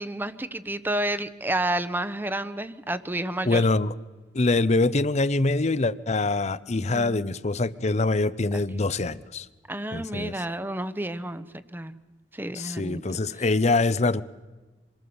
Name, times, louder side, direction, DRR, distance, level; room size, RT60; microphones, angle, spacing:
voice 1, 0.0-3.6 6.8-7.3 9.7-12.0 12.3-13.0, right 1 dB, 10° right, 0.9 m, -30 dB
voice 2, 3.4-3.9 4.3-9.5 9.9-10.3 12.5-14.2, left 3 dB, 40° left, 0.8 m, -24 dB
26.5 x 22.5 x 7.0 m
head